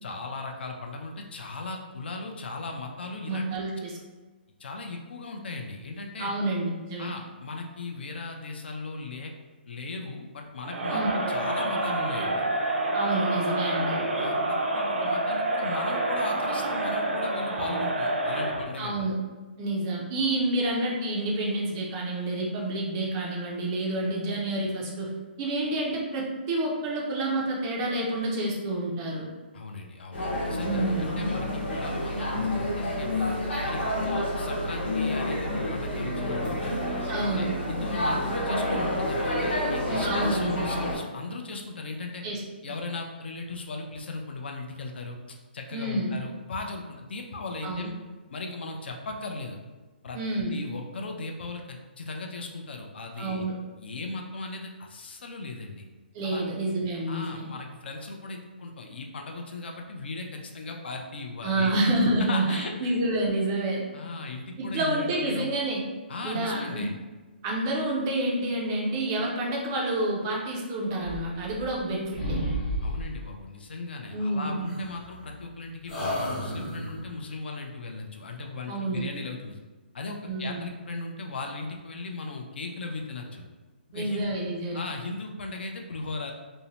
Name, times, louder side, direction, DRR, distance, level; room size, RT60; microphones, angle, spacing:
voice 1, 0.0-3.6 4.6-6.3 7.0-9.3 9.7-11.0 11.3-12.5 14.2-19.1 29.5-33.3 33.6-36.8 37.2-39.4 39.7-42.2 42.6-45.2 45.5-48.0 48.3-49.6 50.0-50.2 50.5-53.5 53.8-55.9 56.2-56.4 57.1-61.8 62.2-62.9 63.9-65.5 66.1-67.0 72.8-79.6 79.9-83.5 83.9-84.3 84.7-86.3, left 3 dB, 70° left, 2 dB, 0.4 m, -37 dB
voice 2, 3.3-4.0 6.2-7.1 10.9-11.1 12.9-14.0 18.8-19.2 19.6-25.1 25.4-29.3 30.6-31.1 37.1-37.5 39.9-40.7 42.2-42.4 42.7-42.8 45.7-46.1 47.6-47.9 50.1-50.6 53.2-53.5 56.1-57.5 61.4-63.8 64.6-65.8 66.2-66.8 67.4-72.4 74.1-74.7 78.7-79.0 80.2-80.7 83.9-84.8, right 1 dB, 20° right, -2 dB, 0.3 m, -28 dB
Crowd, 10.6-18.7, right 2 dB, 80° right, 0.5 m, -28 dB
sound 1, 30.1-40.9, left 1 dB, 90° left, 0.9 m, -29 dB
sound 2, 71.0-71.9 72.1-73.3 74.7-75.5 75.9-77.1, equal, 35° left, 0.9 m, -32 dB
2.6 x 2.0 x 2.8 m, 1.2 s
hypercardioid pair, 170°, 6 cm